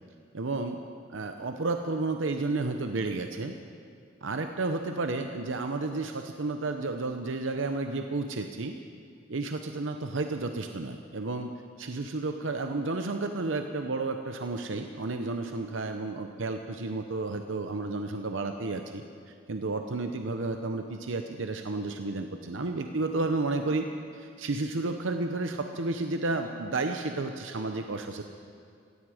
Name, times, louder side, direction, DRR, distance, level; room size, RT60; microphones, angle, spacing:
voice 1, 0.3-0.8 1.1-3.5 4.2-8.7 9.3-11.5 11.8-19.0 19.5-23.9 24.1-28.2, right 3 dB, 70° right, 6 dB, 0.8 m, -32 dB
17.0 x 16.0 x 5.0 m, 2.3 s
head